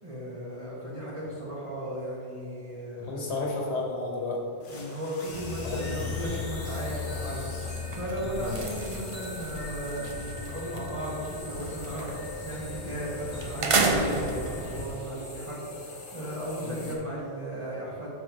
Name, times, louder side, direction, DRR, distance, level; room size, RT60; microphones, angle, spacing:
voice 1, 0.0-3.2 4.7-18.1, right 1 dB, 30° right, -11 dB, 1.3 m, -36 dB
voice 2, 3.0-4.4 5.6-6.1 8.4-8.6 16.6-16.8, left 3 dB, 70° left, -1 dB, 1.4 m, -32 dB
sound 1, 4.6-17.0, left 2 dB, 50° left, 1.0 m, -44 dB
sound 2, 5.3-14.9, left 3 dB, 5° right, 1.4 m, -38 dB
sound 3, 5.3-5.6 5.9-10.9 11.2-12.4 12.9-13.0 13.4-14.7, right 3 dB, 45° right, 0.4 m, -32 dB
7.6 x 5.7 x 2.9 m, 2.5 s
omnidirectional pair, 1.2 m